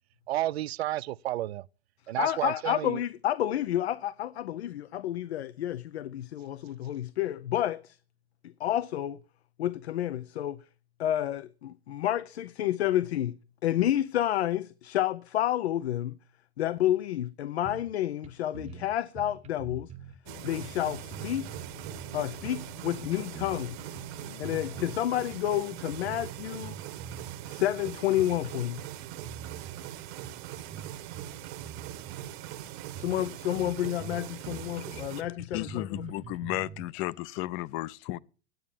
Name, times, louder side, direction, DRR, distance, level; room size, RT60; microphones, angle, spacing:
voice 1, 0.3-1.7 2.1-3.0, right 15 dB, 85° right, 0.5 m, -31 dB
voice 2, 2.2-8.0 8.6-9.2 9.6-10.6 11.0-13.4 13.6-16.2 16.6-19.9 20.4-21.6 22.1-23.8 24.4-26.7 27.4-28.8 33.0-35.8, left 12 dB, 85° left, 0.6 m, -30 dB
sound 1, 17.6-18.0 18.2-18.3 18.5-20.2 20.6-22.7 23.0-25.0 25.3-25.5 25.9-27.5 27.9-28.5 28.8-29.8 30.2-32.3 32.7-32.8 32.9-33.3 33.5-36.8, right 7 dB, 20° right, 0.8 m, -45 dB
sound 2, 20.2-25.3, left 8 dB, 60° left, 1.3 m, -51 dB
sound 3, 20.3-35.2, right 13 dB, 50° right, 1.1 m, -42 dB
voice 3, 35.5-38.2, left 17 dB, 40° left, 0.5 m, -34 dB
9.3 x 8.4 x 7.1 m
hypercardioid pair, 115°, 31 cm